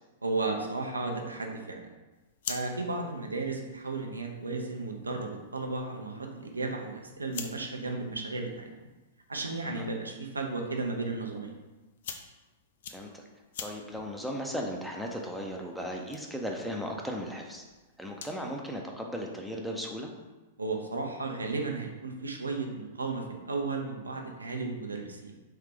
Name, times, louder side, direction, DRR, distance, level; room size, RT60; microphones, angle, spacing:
voice 1, 0.2-1.9 2.5-8.7 9.3-11.5 20.6-25.3, right 3 dB, 80° right, 2 dB, 0.5 m, -34 dB
sound 1, 2.1-18.5, left 7 dB, 60° left, 0.3 m, -48 dB
voice 2, 12.9-13.2 13.6-17.6 18.0-20.1, equal, ahead, 0 dB, 0.5 m, -36 dB
3.2 x 2.8 x 3.5 m, 1.2 s
figure-of-eight pair, 100°, 0 cm